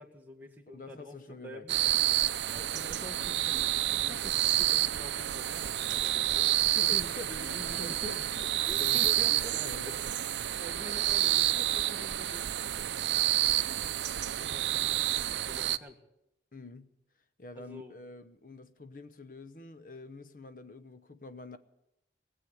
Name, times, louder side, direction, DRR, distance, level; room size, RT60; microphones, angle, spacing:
voice 1, 0.0-1.7 2.5-6.5 6.8-8.1 8.6-9.6 9.9-10.0 10.6-12.5 14.2-16.0 17.6-18.0, left 1 dB, 10° right, 1.6 m, -47 dB
voice 2, 0.7-1.6 4.0-4.4 6.6-10.0 16.5-17.0 17.4-21.6, left 3 dB, 50° left, 0.8 m, -46 dB
sound 1, 1.7-15.8, right 14 dB, 90° right, 0.5 m, -29 dB
19.0 x 7.6 x 9.8 m
head